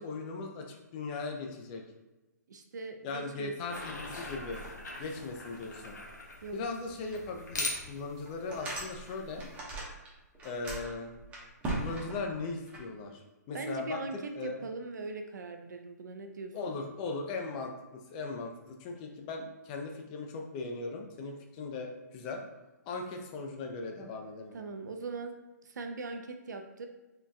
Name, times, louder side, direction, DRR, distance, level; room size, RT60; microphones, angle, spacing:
voice 1, 0.0-1.8 3.0-4.6 5.0-6.0 6.5-9.5 10.4-11.1 11.7-13.2 13.5-14.0 14.4-14.6 16.5-18.5 18.8-22.4 22.9-24.6, left 3 dB, 25° left, 2 dB, 0.4 m, -38 dB
voice 2, 2.5-3.8 6.4-6.6 13.5-16.8 24.5-25.3 25.6-26.9, right 3 dB, 75° right, 5 dB, 0.5 m, -40 dB
sound 1, 3.7-9.6, left 2 dB, 75° left, 0.8 m, -42 dB
sound 2, 7.1-7.2 7.7-7.8 8.3-10.1 10.3-12.8, right 2 dB, 15° right, 0.6 m, -38 dB
3.7 x 2.2 x 2.6 m, 1.1 s
hypercardioid pair, 145°, 10 cm